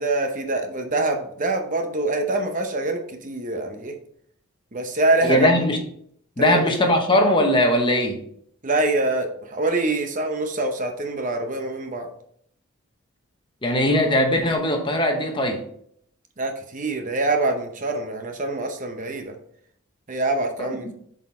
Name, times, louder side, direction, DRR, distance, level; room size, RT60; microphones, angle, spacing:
voice 1, 0.0-3.9 4.7-5.5 6.4-6.9 8.6-12.1 16.4-19.3 20.1-20.9, right 2 dB, 35° right, 0.8 m, -25 dB
voice 2, 5.2-5.8 6.4-8.2 13.6-15.6 20.6-20.7, left 1 dB, 20° left, 0.9 m, -20 dB
7.2 x 4.3 x 4.3 m
head